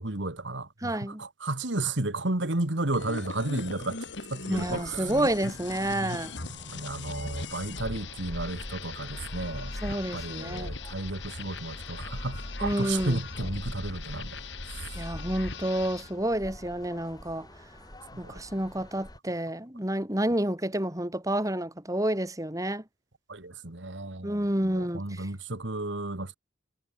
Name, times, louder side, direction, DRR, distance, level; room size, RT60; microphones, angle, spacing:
voice 1, 0.0-4.0 4.3-5.1 6.7-14.4 18.2-18.4 23.3-24.4 24.6-26.3, right 2 dB, 80° right, 2.3 m, -33 dB
voice 2, 0.8-1.2 4.5-6.3 9.8-10.7 12.6-13.2 15.0-17.5 18.2-22.8 24.2-25.3, right 1 dB, 20° right, 4.1 m, -29 dB
sound 1, 2.9-16.1, left 3 dB, 75° left, 3.1 m, -39 dB
sound 2, 4.5-19.2, left 1 dB, 20° left, 3.9 m, -46 dB
head